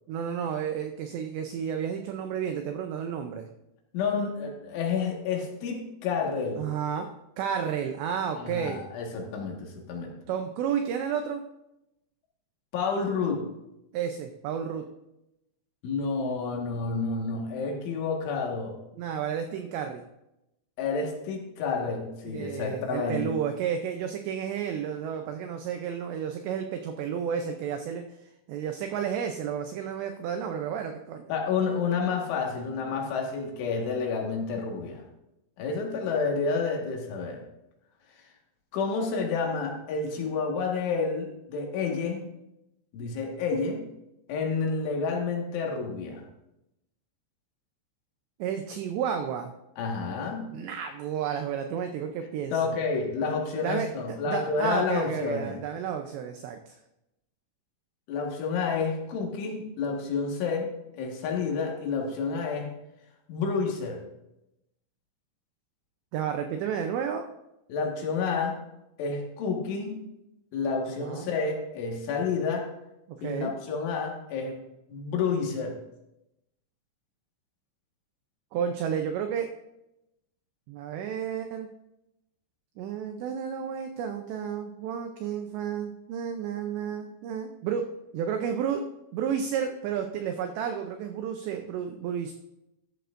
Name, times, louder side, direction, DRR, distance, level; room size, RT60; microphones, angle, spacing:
voice 1, 0.1-3.5 6.6-7.1 7.4-8.8 10.3-11.4 13.9-14.8 19.0-20.0 22.3-31.3 48.4-49.5 50.4-52.5 53.6-53.9 54.3-56.7 66.1-67.3 71.0-71.3 73.1-73.5 78.5-79.5 80.7-81.7 82.8-87.9 88.1-88.8 89.1-92.3, right 8 dB, 85° right, 5 dB, 2.5 m, -31 dB
voice 2, 3.9-6.7 8.4-10.1 12.7-13.5 15.8-18.7 20.8-23.3 31.3-35.0 35.6-37.4 38.7-42.3 42.9-43.8 44.3-46.3 49.8-50.5 52.5-55.6 58.1-60.7 61.0-62.7 63.3-64.0 67.7-68.6 69.0-70.0 70.5-72.7 73.2-74.6 74.9-75.8, left 5 dB, 70° left, 0 dB, 3.9 m, -29 dB
13.5 x 12.0 x 2.6 m, 0.88 s
omnidirectional pair, 5.9 m